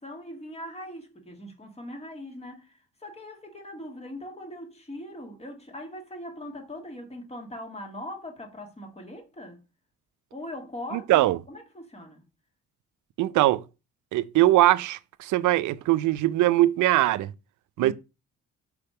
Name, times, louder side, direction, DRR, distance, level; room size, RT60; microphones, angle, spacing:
voice 1, 0.0-9.6 10.3-12.2 17.8-17.9, left 1 dB, 20° left, 1.8 m, -41 dB
voice 2, 10.9-11.4 13.2-13.6 14.1-17.3 17.8-17.9, right 15 dB, 75° right, 0.5 m, -21 dB
4.9 x 3.5 x 5.5 m
cardioid pair, 90°, 30 cm